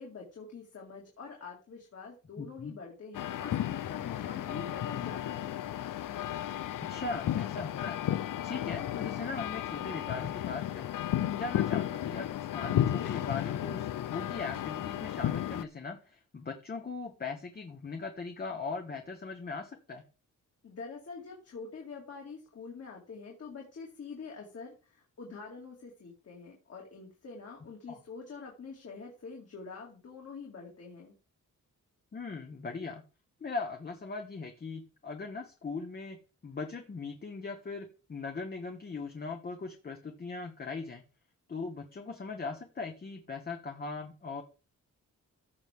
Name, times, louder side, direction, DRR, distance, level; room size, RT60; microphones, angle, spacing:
voice 1, 0.0-5.6 20.6-31.1, left 5 dB, 50° left, -1 dB, 2.4 m, -45 dB
voice 2, 2.4-2.7 6.8-8.0 8.4-10.9 11.3-20.0 27.9-28.0 32.1-33.0 33.4-36.2 36.4-41.0 41.5-44.4, left 4 dB, 30° left, 4 dB, 1.1 m, -39 dB
sound 1, 3.1-15.6, left 11 dB, 80° left, 0.6 m, -33 dB
15.0 x 6.2 x 3.6 m, 0.34 s
wide cardioid pair, 175°, 32 cm